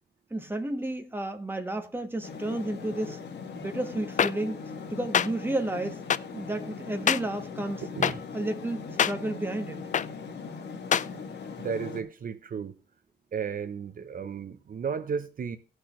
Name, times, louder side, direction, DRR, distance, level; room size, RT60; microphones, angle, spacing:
voice 1, 0.3-3.2 3.5-4.6 4.9-6.0 6.3-7.8 8.3-9.8, right 1 dB, 10° right, 1.5 m, -32 dB
sound 1, 2.2-12.0, left 5 dB, 80° left, 1.7 m, -40 dB
sound 2, 4.2-4.3 5.1-5.3 6.1-6.2 7.1-7.2 8.0-8.1 9.0-9.1 9.9-10.1 10.9-11.1, left 8 dB, 45° left, 0.4 m, -22 dB
voice 2, 11.6-12.7 13.3-15.6, right 6 dB, 55° right, 0.8 m, -33 dB
18.0 x 6.2 x 3.1 m
cardioid pair, 110°, 18 cm